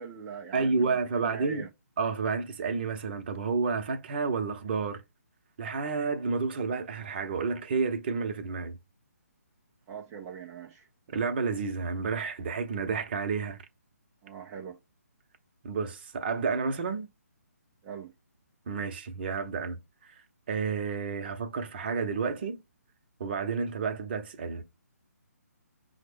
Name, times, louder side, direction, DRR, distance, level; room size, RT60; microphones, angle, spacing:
voice 1, 0.0-1.7 9.9-10.9 14.2-14.8 17.8-18.1, right 7 dB, 15° right, 0.3 m, -42 dB
voice 2, 0.5-1.7 2.0-5.0 5.6-8.7 11.1-13.6 15.6-17.1 18.7-20.1 20.5-22.6 23.2-24.6, right 4 dB, 40° right, 0.7 m, -30 dB
5.6 x 2.1 x 3.4 m
figure-of-eight pair, 140°, 9 cm